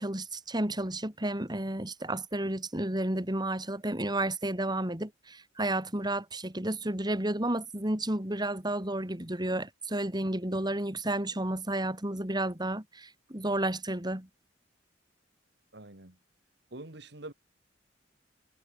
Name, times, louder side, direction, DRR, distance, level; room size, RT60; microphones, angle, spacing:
voice 1, 0.0-14.3, right 1 dB, 25° right, 3.7 m, -32 dB
voice 2, 15.7-16.2 16.7-17.3, right 2 dB, 65° right, 2.6 m, -45 dB
head